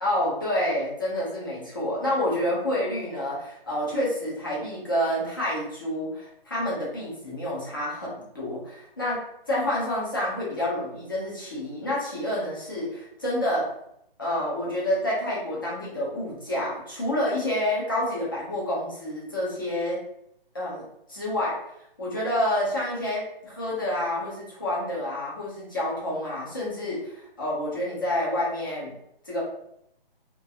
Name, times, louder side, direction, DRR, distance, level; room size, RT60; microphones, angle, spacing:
voice 1, 0.0-13.7 14.2-20.0 20.5-20.8 21.1-21.6 22.0-28.9 29.2-29.4, left 1 dB, 20° left, -7 dB, 0.5 m, -28 dB
2.4 x 2.1 x 2.6 m, 0.76 s
hypercardioid pair, 170°, 30 cm